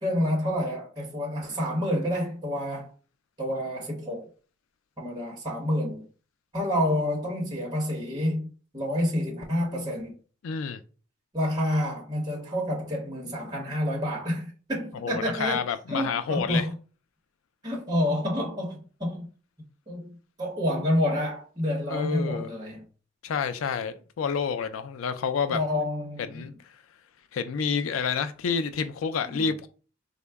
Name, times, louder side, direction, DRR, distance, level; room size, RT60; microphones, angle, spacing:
voice 1, 0.0-2.9 3.4-4.3 5.0-6.0 6.5-8.5 8.7-10.1 11.3-16.7 17.6-19.3 19.9-22.8 25.5-26.5 29.2-29.4, left 1 dB, 20° right, 0.9 m, -28 dB
voice 2, 10.4-10.8 15.0-16.7 21.9-22.5 23.2-25.6 26.3-26.5 27.3-29.7, left 6 dB, 85° left, 0.4 m, -29 dB
3.7 x 2.1 x 3.4 m
head